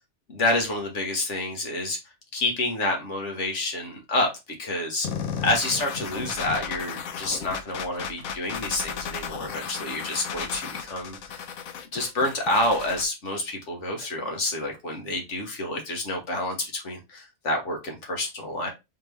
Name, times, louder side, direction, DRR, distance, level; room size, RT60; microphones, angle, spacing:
voice 1, 0.3-2.0 2.3-4.3 4.6-5.1 5.4-11.5 11.9-18.7, left 2 dB, 60° left, 2 dB, 1.4 m, -28 dB
sound 1, 5.0-13.0, left 6 dB, 90° left, 1.1 m, -34 dB
4.2 x 2.9 x 3.2 m, 0.23 s
omnidirectional pair, 1.4 m